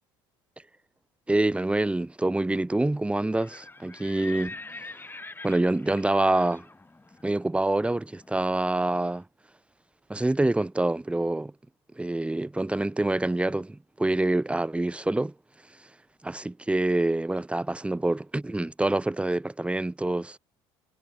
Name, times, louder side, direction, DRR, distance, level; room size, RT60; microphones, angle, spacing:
voice 1, 1.3-4.5 5.4-6.7 7.2-9.2 10.1-11.5 12.0-15.3 16.2-20.4, right 2 dB, 10° right, 0.8 m, -26 dB
Livestock farm animals working animals, 3.2-9.1, left 2 dB, 15° left, 6.1 m, -45 dB
hypercardioid pair, 65°, 13 cm